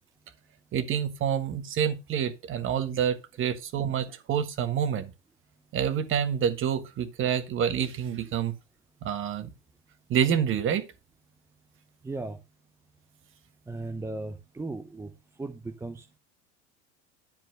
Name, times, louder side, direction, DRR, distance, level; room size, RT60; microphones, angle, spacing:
voice 1, 0.7-5.1 5.7-8.5 9.0-9.5 10.1-10.8, right 8 dB, 35° right, 1.5 m, -27 dB
voice 2, 12.0-12.4 13.7-15.1 15.4-16.2, right 2 dB, 10° right, 0.7 m, -36 dB
10.5 x 4.5 x 6.3 m
supercardioid pair, 130°, 35 cm